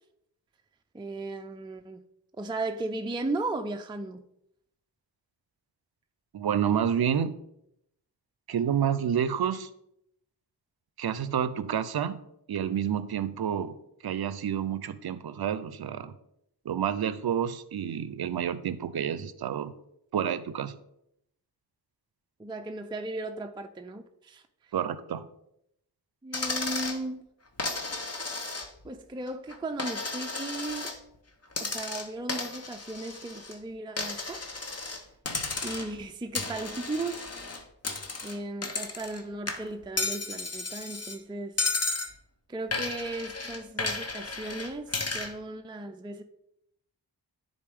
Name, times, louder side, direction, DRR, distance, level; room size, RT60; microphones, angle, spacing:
voice 1, 0.9-2.0 2.4-4.2 22.4-24.4 26.2-27.3 28.8-30.9 31.6-34.4 35.6-37.3 38.2-41.6 42.5-46.2, right 2 dB, 10° right, 0.4 m, -36 dB
voice 2, 6.3-7.4 8.5-9.7 11.0-12.2 12.5-13.8 14.0-16.1 16.6-19.7 20.1-20.8 24.7-25.3, right 8 dB, 60° right, 0.6 m, -29 dB
Coin (dropping), 26.3-27.0 27.6-28.9 29.3-31.0 31.5-33.6 34.0-35.0 35.3-36.0 36.3-39.2 39.5-41.2 41.6-42.1 42.7-45.3, left 3 dB, 35° left, 0.9 m, -33 dB
10.0 x 4.0 x 3.5 m
wide cardioid pair, 60°, 42 cm